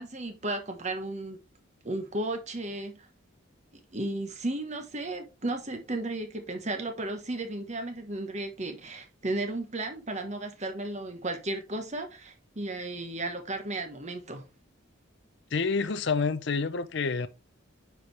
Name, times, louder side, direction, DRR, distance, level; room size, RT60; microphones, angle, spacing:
voice 1, 0.0-1.4 1.8-3.1 3.7-14.5, right 2 dB, 35° right, 1.2 m, -34 dB
voice 2, 15.5-17.3, left 4 dB, 60° left, 0.6 m, -28 dB
9.6 x 4.6 x 3.3 m
head